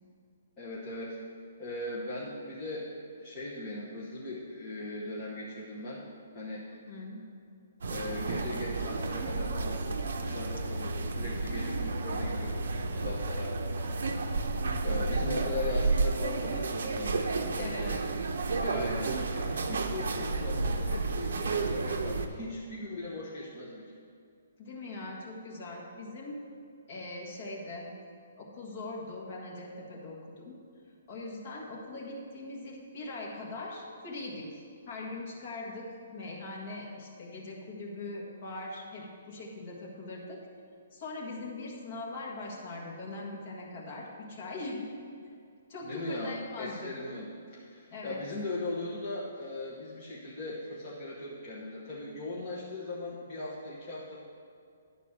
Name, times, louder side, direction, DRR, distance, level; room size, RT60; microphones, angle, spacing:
voice 1, 0.6-1.2 1.6-6.0 6.3-6.6 7.9-9.8 10.1-12.6 12.9-13.6 14.8-18.0 18.5-23.8 45.8-54.2, left 2 dB, 15° left, -9 dB, 1.1 m, -39 dB
voice 2, 6.7-7.2 17.6-17.9 24.6-26.4 26.9-27.9 28.4-30.6 31.1-40.4 40.9-44.9 45.7-46.9 47.9-48.2, left 2 dB, 30° left, -2 dB, 1.5 m, -41 dB
sound 1, 7.8-22.3, right 3 dB, 65° right, 0.7 m, -31 dB
11.0 x 4.1 x 7.3 m, 2.4 s
hypercardioid pair, 175°, 0 cm